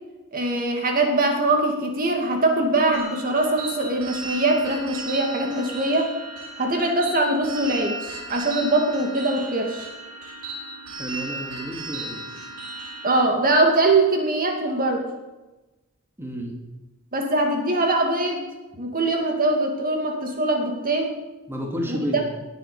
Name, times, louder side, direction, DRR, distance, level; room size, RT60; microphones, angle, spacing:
voice 1, 0.3-6.1 6.6-9.9 13.0-15.0 17.1-18.5 18.8-21.2 21.9-22.0, right 2 dB, 40° right, 3 dB, 2.5 m, -22 dB
sound 1, 2.9-13.2, right 2 dB, 85° right, 4.7 m, -36 dB
voice 2, 11.0-12.5 16.2-16.5 21.5-22.2, equal, 10° right, 0 dB, 2.3 m, -31 dB
19.5 x 9.1 x 6.8 m, 1.1 s
head